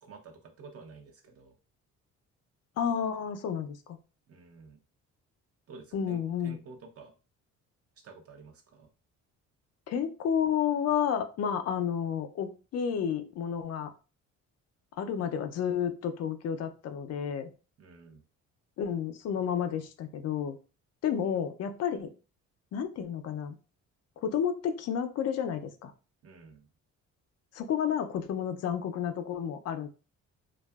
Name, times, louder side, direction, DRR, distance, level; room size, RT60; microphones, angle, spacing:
voice 1, 0.0-1.6 4.3-4.8 5.7-7.2 8.0-8.9 17.8-18.2 26.2-26.7, right 4 dB, 50° right, 4 dB, 0.6 m, -51 dB
voice 2, 2.8-4.0 5.9-6.6 9.9-13.9 15.0-17.5 18.8-20.6 21.0-22.1 22.7-23.5 24.2-25.9 27.5-29.9, left 8 dB, 60° left, 8 dB, 0.4 m, -31 dB
2.6 x 2.3 x 2.2 m, 0.33 s
cardioid pair, 105°, 30 cm